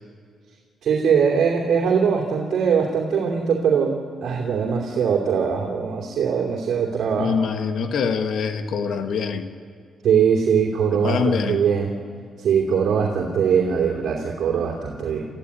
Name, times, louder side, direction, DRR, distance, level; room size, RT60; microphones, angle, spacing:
voice 1, 0.8-7.4 10.0-11.9 12.4-15.3, right 6 dB, 70° right, -2 dB, 2.8 m, -21 dB
voice 2, 7.2-9.5 11.0-11.6, left 5 dB, 70° left, 7 dB, 1.4 m, -24 dB
30.0 x 14.5 x 9.9 m, 2.1 s
cardioid pair, 130°, 0 cm